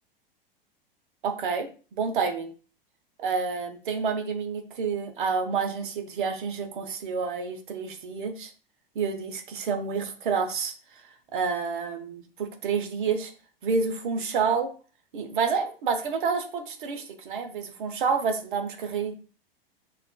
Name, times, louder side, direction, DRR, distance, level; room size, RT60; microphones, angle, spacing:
voice 1, 1.2-2.5 3.2-8.5 8.9-10.7 11.3-13.3 13.6-14.7 15.1-19.1, right 5 dB, 60° right, 6 dB, 0.9 m, -29 dB
6.5 x 2.6 x 2.3 m, 0.37 s
figure-of-eight pair, 100°, 29 cm